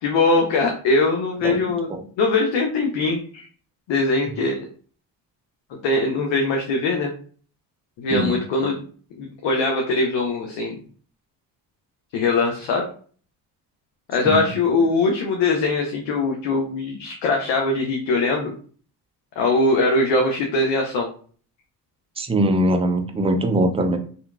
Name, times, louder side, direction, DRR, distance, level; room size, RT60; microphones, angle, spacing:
voice 1, 0.0-1.9 2.2-3.5 3.9-4.6 5.8-7.1 8.0-8.8 9.2-10.8 12.1-12.8 14.1-18.5 19.4-21.1, left 3 dB, 80° left, 1 dB, 0.7 m, -21 dB
voice 2, 1.4-2.0 8.1-8.4 14.3-14.5 22.2-24.0, right 1 dB, 15° right, 6 dB, 0.4 m, -22 dB
2.8 x 2.5 x 2.2 m, 0.44 s
supercardioid pair, 65°, 44 cm